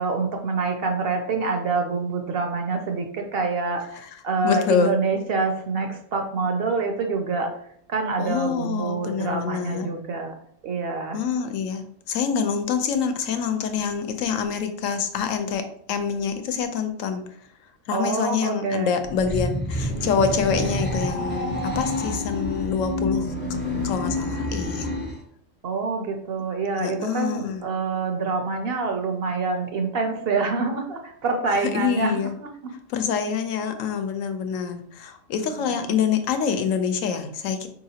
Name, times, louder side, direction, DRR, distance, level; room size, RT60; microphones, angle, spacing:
voice 1, 0.0-4.0 4.2-7.5 7.9-10.3 10.6-11.2 17.9-18.9 25.6-32.7 35.4-35.7, right 4 dB, 60° right, 4 dB, 0.6 m, -26 dB
voice 2, 4.4-5.0 8.2-9.9 11.1-15.6 15.9-17.2 17.9-23.3 23.8-24.9 26.8-27.6 31.6-32.3 32.9-37.7, left 6 dB, 80° left, 7 dB, 1.0 m, -26 dB
sound 1, 19.0-25.2, left 1 dB, 20° left, 0.3 m, -28 dB
4.8 x 2.8 x 2.8 m, 0.64 s
omnidirectional pair, 1.4 m